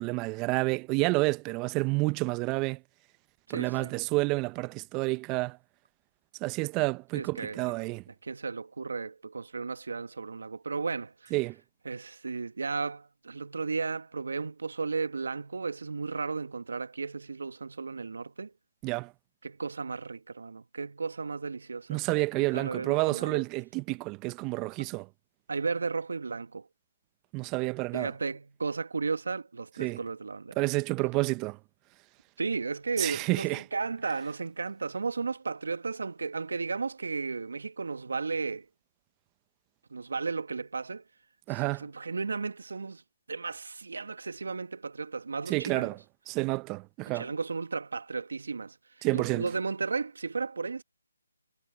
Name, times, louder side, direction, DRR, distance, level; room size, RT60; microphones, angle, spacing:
voice 1, 0.0-2.8 3.5-5.6 6.4-8.0 11.3-11.6 18.8-19.1 21.9-25.1 27.3-28.1 29.8-30.0 30.6-31.6 33.0-33.6 41.5-41.9 45.5-46.0 46.3-47.3 49.0-49.4, right 24 dB, 20° right, 0.7 m, -29 dB
voice 2, 3.5-3.9 7.1-7.6 8.1-11.3 11.8-18.5 19.4-22.0 22.3-23.4 25.5-26.7 27.9-30.6 32.4-38.6 39.9-41.0 41.5-43.0 43.3-45.9 47.1-48.8 49.1-50.8, right 4 dB, 70° right, 1.4 m, -34 dB
figure-of-eight pair, 155°, 0 cm